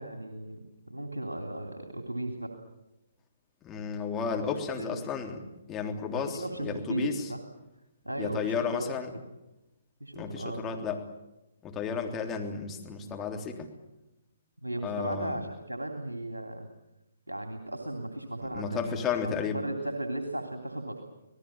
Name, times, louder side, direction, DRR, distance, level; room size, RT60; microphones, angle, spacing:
voice 1, 0.0-2.5 4.8-5.0 6.2-7.4 8.0-8.9 10.0-10.6 14.6-16.7 17.3-21.0, right 1 dB, 85° right, 5 dB, 3.2 m, -36 dB
voice 2, 3.6-5.4 5.7-7.3 8.2-9.1 10.1-11.0 11.6-13.7 14.8-15.4 18.5-19.6, left 6 dB, 15° left, 2 dB, 3.4 m, -33 dB
27.0 x 19.0 x 8.9 m, 0.96 s
figure-of-eight pair, 130°, 0 cm